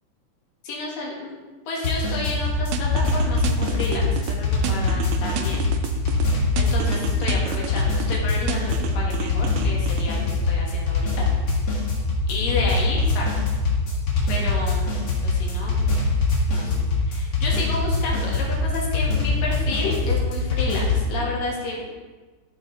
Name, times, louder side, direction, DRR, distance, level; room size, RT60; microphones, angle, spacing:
voice 1, 0.6-1.3 1.7-5.7 6.6-11.3 12.3-13.3 14.3-14.9 15.2-15.8 16.5-22.0, left 2 dB, 75° left, -2 dB, 3.2 m, -31 dB
sound 1, 1.8-21.1, left 3 dB, 45° left, 1.5 m, -23 dB
sound 2, 2.7-4.3 4.6-6.3 6.6-8.2 8.5-10.1, right 8 dB, 80° right, 1.8 m, -32 dB
12.5 x 5.8 x 3.9 m, 1.3 s
omnidirectional pair, 4.1 m